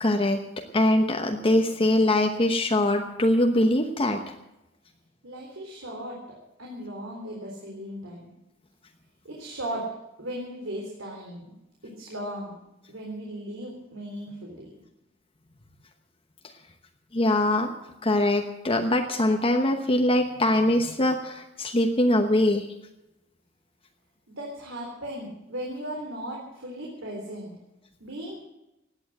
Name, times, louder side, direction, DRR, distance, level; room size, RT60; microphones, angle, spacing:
voice 1, 0.0-4.2 17.1-17.7 18.0-22.7, left 1 dB, 30° left, 4 dB, 1.0 m, -23 dB
voice 2, 5.2-6.2 6.6-8.3 9.2-9.8 10.2-11.5 11.8-12.6 12.9-14.7 24.3-27.5 28.0-28.4, right 1 dB, 85° right, -2 dB, 3.7 m, -37 dB
17.0 x 9.7 x 7.7 m, 0.91 s
head